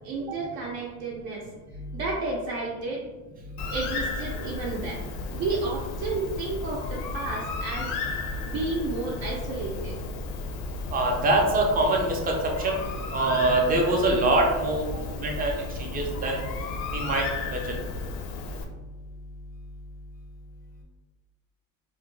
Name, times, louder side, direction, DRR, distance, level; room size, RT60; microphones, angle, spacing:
voice 1, 0.0-1.4 1.9-3.0 3.7-5.0 5.3-7.9 8.4-9.9 14.9-15.0, right 3 dB, 65° right, -4 dB, 0.6 m, -31 dB
Bird, 3.6-18.6, left 3 dB, 65° left, 0.5 m, -34 dB
voice 2, 10.9-12.8 13.1-16.4 16.9-17.8, right 2 dB, 20° right, 0 dB, 0.4 m, -24 dB
2.5 x 2.1 x 3.1 m, 1.2 s
cardioid pair, 130°, 41 cm